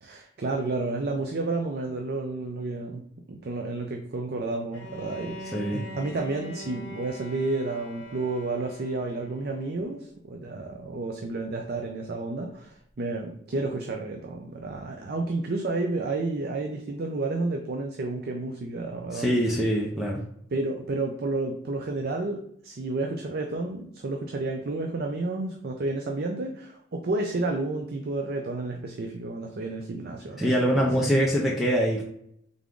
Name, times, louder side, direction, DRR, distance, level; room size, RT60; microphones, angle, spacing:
voice 1, 0.0-19.3 20.5-30.9, right 2 dB, 50° right, 3 dB, 0.5 m, -31 dB
Bowed string instrument, 4.7-9.7, equal, 65° left, 0.9 m, -42 dB
voice 2, 19.1-20.2 30.4-32.0, equal, ahead, -4 dB, 0.5 m, -24 dB
3.6 x 3.5 x 3.7 m, 0.70 s
head